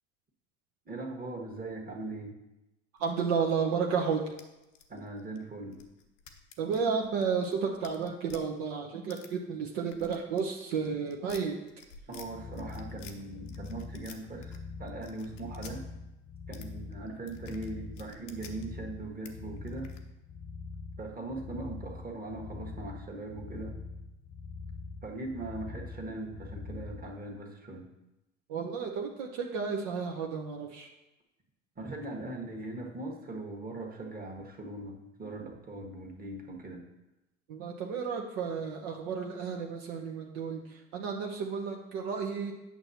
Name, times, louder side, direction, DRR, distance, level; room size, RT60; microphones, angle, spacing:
voice 1, 0.8-2.4 4.9-5.8 12.1-15.8 16.5-19.9 21.0-23.8 25.0-27.9 31.8-36.8, right 2 dB, 25° right, 1 dB, 1.5 m, -40 dB
sound 1, 3.0-3.7 4.1-8.4 9.1-9.3 9.8-12.3 12.5-13.2 13.5-14.6 14.9-15.8 16.5-16.7 16.9-18.7 19.3-19.4 19.6-20.0, left 6 dB, 85° left, 0.8 m, -52 dB
voice 2, 3.0-4.2 6.6-11.5 28.5-30.9 37.5-42.5, right 6 dB, 65° right, 1 dB, 0.9 m, -32 dB
sound 2, 12.1-27.1, left 4 dB, 35° left, 0.7 m, -44 dB
8.8 x 6.0 x 2.8 m, 0.96 s
hypercardioid pair, 70°, 36 cm